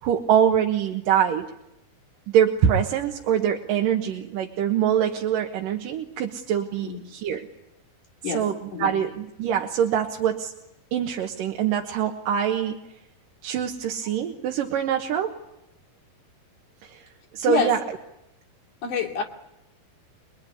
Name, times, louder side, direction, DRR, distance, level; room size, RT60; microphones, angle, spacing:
voice 1, 0.0-1.5 2.3-7.5 8.3-10.5 10.9-12.8 13.4-15.4 16.8-17.1 17.3-18.0, right 9 dB, 65° right, 2.8 m, -24 dB
voice 2, 8.2-8.9 17.5-17.7 18.8-19.2, left 5 dB, 55° left, 4.0 m, -27 dB
24.0 x 23.5 x 9.7 m
omnidirectional pair, 4.5 m